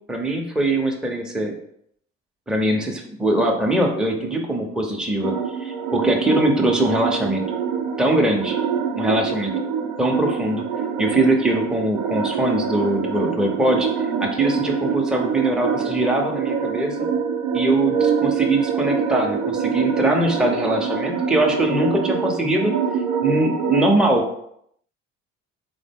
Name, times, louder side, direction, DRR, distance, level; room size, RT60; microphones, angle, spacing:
voice 1, 0.1-1.5 2.5-5.3 5.6-7.4 8.0-8.6 8.9-9.5 10.0-10.7 11.0-13.9 14.2-17.1 17.5-22.7 23.2-24.2, right 1 dB, ahead, 1 dB, 0.6 m, -22 dB
sound 1, 5.2-23.9, right 6 dB, 65° right, 0.5 m, -25 dB
3.6 x 2.1 x 3.4 m, 0.72 s
hypercardioid pair, 60°, 33 cm